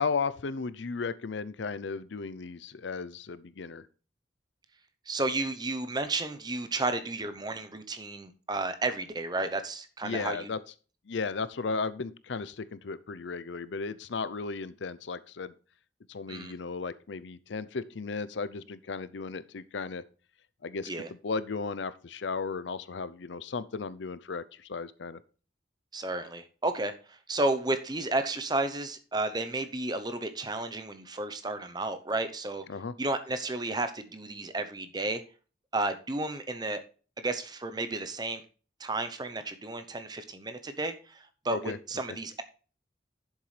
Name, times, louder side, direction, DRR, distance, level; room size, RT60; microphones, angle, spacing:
voice 1, 0.0-3.9 10.0-10.6 11.1-15.5 16.1-20.0 20.6-20.9 21.2-25.2 32.7-32.9 41.5-41.8 42.1-42.2, left 4 dB, 75° left, 16 dB, 0.6 m, -35 dB
voice 2, 5.1-10.5 16.3-16.5 20.9-21.1 25.9-32.6 33.0-35.2 35.7-36.8 37.2-38.4 38.8-42.4, right 2 dB, 20° right, 9 dB, 0.8 m, -32 dB
11.0 x 7.3 x 3.3 m, 0.37 s
head